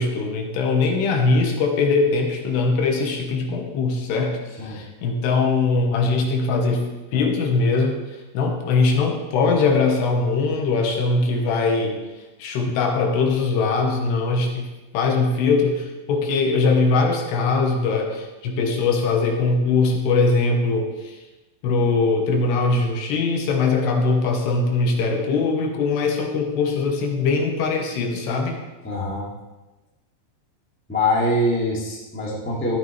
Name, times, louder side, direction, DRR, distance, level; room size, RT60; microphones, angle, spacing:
voice 1, 0.0-8.0 8.3-12.0 12.4-14.7 14.9-21.2 21.6-28.6, left 3 dB, 75° left, 2 dB, 3.2 m, -21 dB
voice 2, 28.8-29.3 30.9-32.8, left 1 dB, 5° left, -6 dB, 1.1 m, -23 dB
13.5 x 9.5 x 3.4 m, 1.1 s
omnidirectional pair, 5.1 m